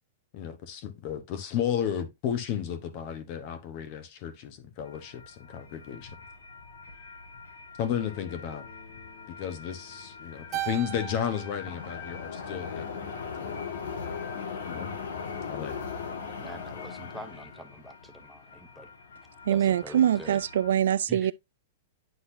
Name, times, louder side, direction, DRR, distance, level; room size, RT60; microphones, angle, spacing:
voice 1, 0.3-6.2 7.8-8.7 9.4-13.1 13.5-13.6 14.6-14.9 15.5-15.8, left 9 dB, 35° left, 1.0 m, -33 dB
sound 1, 4.9-20.7, left 5 dB, 90° left, 1.7 m, -40 dB
Bass guitar, 8.0-12.2, left 10 dB, 75° left, 1.2 m, -56 dB
Keyboard (musical), 10.5-13.0, right 16 dB, 20° right, 1.0 m, -39 dB
voice 2, 16.4-18.9 19.5-20.4 21.1-21.3, right 1 dB, ahead, 0.6 m, -45 dB
voice 3, 19.5-21.3, right 10 dB, 75° right, 0.3 m, -24 dB
9.9 x 4.0 x 2.6 m
supercardioid pair, 175°, 0 cm